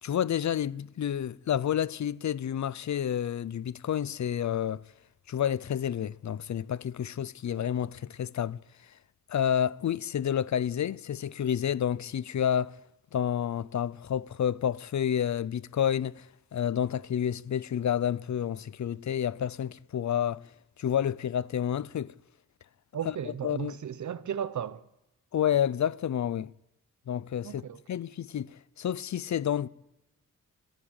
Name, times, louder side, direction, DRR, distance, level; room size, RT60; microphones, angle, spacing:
voice 1, 0.0-4.8 5.3-8.6 9.3-12.8 13.1-20.4 20.8-22.1 23.0-23.8 25.3-26.5 27.1-29.7, left 9 dB, 60° left, 0.7 m, -29 dB
voice 2, 22.9-24.8 27.4-27.8, right 8 dB, 60° right, 1.1 m, -35 dB
25.5 x 15.5 x 9.0 m
wide cardioid pair, 145°, 33 cm